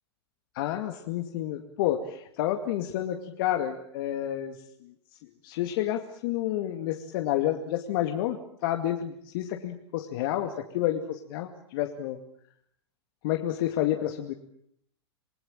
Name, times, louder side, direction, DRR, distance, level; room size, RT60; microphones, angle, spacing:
voice 1, 0.5-4.6 4.8-4.9 5.2-12.2 13.2-14.3, left 12 dB, 55° left, 5 dB, 2.4 m, -30 dB
28.0 x 20.0 x 9.0 m, 0.71 s
hypercardioid pair, 105°, 14 cm